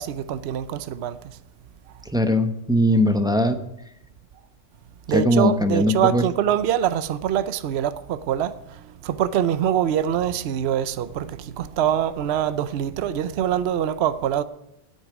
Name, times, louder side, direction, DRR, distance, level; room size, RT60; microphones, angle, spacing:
voice 1, 0.0-1.4 5.1-14.4, right 10 dB, 65° right, 0.9 m, -24 dB
voice 2, 2.0-3.6 5.1-6.2, left 1 dB, 5° right, 0.8 m, -20 dB
9.1 x 8.7 x 9.3 m
omnidirectional pair, 1.2 m